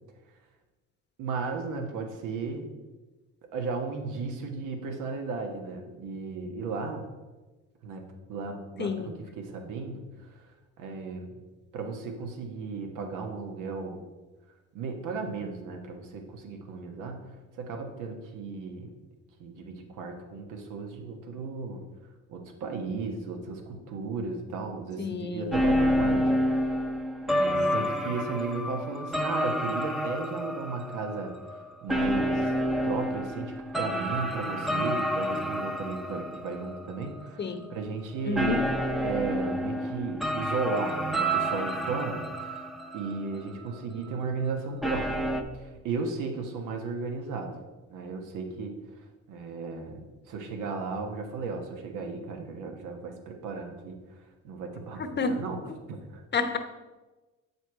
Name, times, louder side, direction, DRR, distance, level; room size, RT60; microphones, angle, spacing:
voice 1, 1.2-2.7 3.5-7.1 7.8-8.0 8.3-8.9 9.4-10.3 10.8-11.3 11.7-14.0 14.7-17.2 17.5-18.9 19.4-21.8 22.3-26.2 27.3-31.3 31.8-32.5 32.8-38.6 39.0-42.6 42.9-45.2 45.5-47.5 47.9-48.7 49.3-54.0 54.4-55.6 55.9-56.2, right 4 dB, 90° right, 4 dB, 1.2 m, -35 dB
voice 2, 8.8-9.1 25.0-25.6 37.4-37.7 38.2-38.6 55.2-55.3 56.3-56.6, left 4 dB, 35° left, 8 dB, 0.9 m, -29 dB
sound 1, 25.5-37.3 37.6-37.8 38.4-43.8 44.1-44.2 44.8-45.4, equal, ahead, 0.7 m, -29 dB
7.7 x 5.6 x 4.7 m, 1.2 s
cardioid pair, 90°, 30 cm